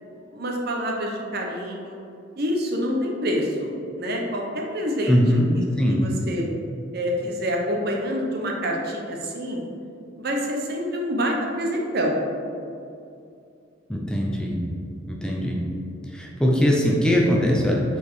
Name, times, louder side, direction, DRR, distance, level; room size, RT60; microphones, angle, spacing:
voice 1, 0.0-2.0 2.4-3.7 4.0-5.4 5.9-6.5 6.9-9.6 10.2-12.2, equal, 55° right, 0 dB, 0.9 m, -27 dB
voice 2, 5.1-5.5 5.8-6.1 13.9-14.6 15.1-15.6 16.1-17.8, equal, 5° left, -3 dB, 0.6 m, -21 dB
5.2 x 4.4 x 4.7 m, 2.5 s
head